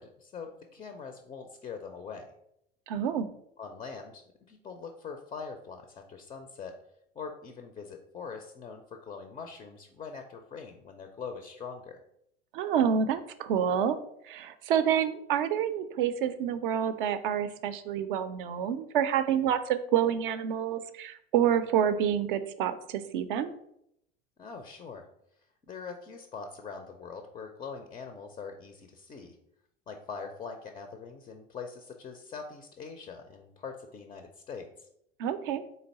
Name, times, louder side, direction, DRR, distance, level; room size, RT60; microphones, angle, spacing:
voice 1, 0.0-2.3 3.6-6.8 7.2-12.0 24.4-25.1 25.7-29.4 29.9-34.9, left 5 dB, 15° left, 5 dB, 0.4 m, -43 dB
voice 2, 2.9-3.3 12.5-14.0 14.2-23.5 35.2-35.6, right 8 dB, 60° right, 11 dB, 0.5 m, -28 dB
3.9 x 3.2 x 4.0 m, 0.75 s
figure-of-eight pair, 75°, 30 cm